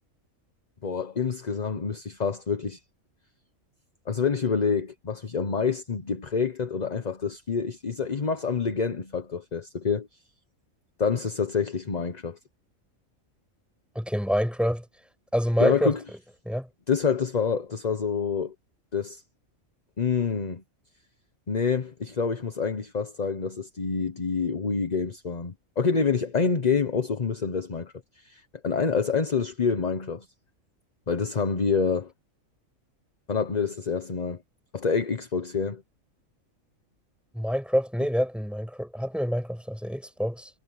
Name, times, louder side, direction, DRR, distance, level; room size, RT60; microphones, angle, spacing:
voice 1, 0.8-2.8 4.1-10.1 11.0-12.4 15.6-16.0 16.9-18.5 18.9-19.2 20.0-20.6 21.5-30.3 31.1-32.1 33.3-34.4 34.7-35.8, left 5 dB, 35° left, 1.1 m, -27 dB
voice 2, 13.9-14.8 15.3-15.9 16.4-16.7 37.3-40.5, equal, ahead, 8.0 m, -26 dB
omnidirectional pair, 1.4 m